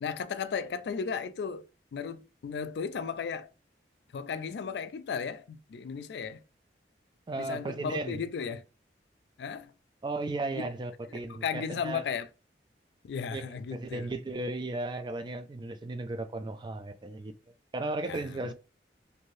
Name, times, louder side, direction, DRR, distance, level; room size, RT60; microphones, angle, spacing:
voice 1, 0.0-3.5 4.1-6.4 7.4-8.6 9.4-9.7 10.5-10.7 11.3-12.3 13.0-14.1 18.0-18.5, left 6 dB, 70° left, 0.3 m, -35 dB
voice 2, 7.3-8.2 10.0-12.0 13.3-13.4 13.7-17.3 17.7-18.5, right 2 dB, 25° right, 0.3 m, -35 dB
2.7 x 2.6 x 3.1 m
head